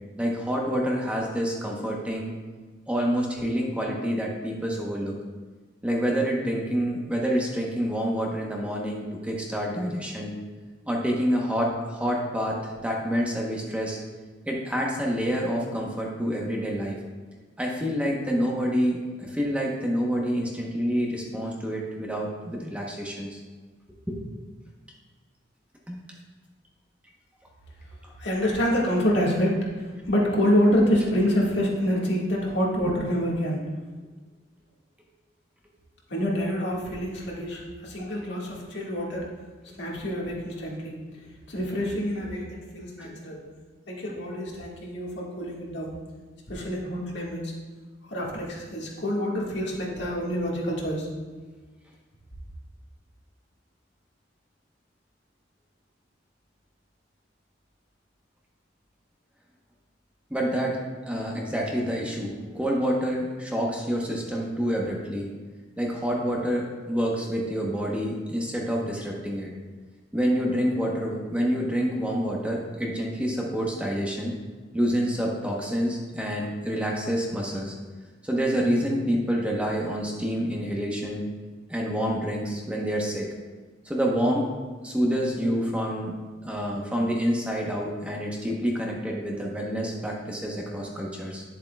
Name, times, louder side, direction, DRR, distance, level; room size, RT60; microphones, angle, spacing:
voice 1, 0.2-2.3 2.9-5.1 5.8-10.3 10.9-14.0 14.4-17.0 17.6-23.4 24.1-24.2 25.9-26.0 32.8-33.0 43.0-43.2 60.3-60.8 61.1-65.3 65.8-69.5 70.1-74.3 74.7-77.7 78.2-81.3 81.7-83.3 83.9-84.5 84.8-86.1 86.4-91.4, equal, 5° right, -2 dB, 0.9 m, -27 dB
voice 2, 28.2-29.6 30.0-33.6 36.1-39.3 39.8-40.9 41.5-43.4 43.9-45.9 46.5-47.5 48.1-51.1, equal, 70° left, -3 dB, 1.7 m, -26 dB
10.5 x 7.3 x 2.3 m, 1.4 s
head